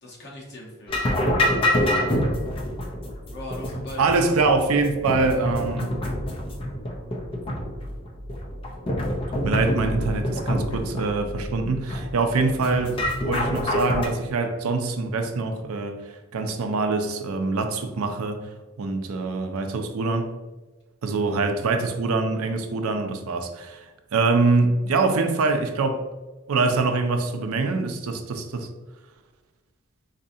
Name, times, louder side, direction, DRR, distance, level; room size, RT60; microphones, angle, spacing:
voice 1, 0.0-0.9 3.3-4.1 12.4-12.9, left 1 dB, 50° left, -3 dB, 1.0 m, -40 dB
sound 1, 0.9-14.1, left 1 dB, 25° left, 0.4 m, -27 dB
voice 2, 4.0-6.0 9.4-18.4 18.8-20.3 21.0-26.0 26.5-28.7, right 3 dB, 80° right, 5 dB, 0.5 m, -24 dB
4.0 x 2.6 x 2.6 m, 1.2 s
head